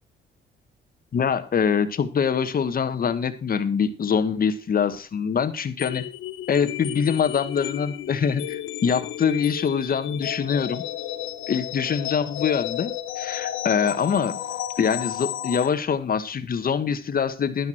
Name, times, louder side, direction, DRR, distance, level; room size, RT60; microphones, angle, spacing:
voice 1, 1.1-6.1 6.5-10.8 11.5-14.4 14.8-17.7, left 7 dB, 45° left, 11 dB, 1.4 m, -24 dB
sound 1, 5.8-15.7, left 12 dB, 85° left, 1.0 m, -33 dB
11.0 x 11.0 x 4.4 m, 0.35 s
cardioid pair, 90°, 20 cm